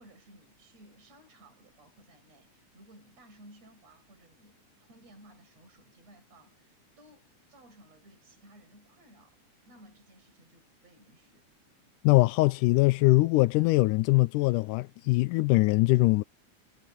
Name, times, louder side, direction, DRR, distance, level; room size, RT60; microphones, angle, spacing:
voice 1, 0.0-9.4 9.7-11.5, right 1 dB, 55° right, 7.8 m, -57 dB
voice 2, 12.0-16.2, left 21 dB, 85° left, 2.1 m, -22 dB
omnidirectional pair, 3.7 m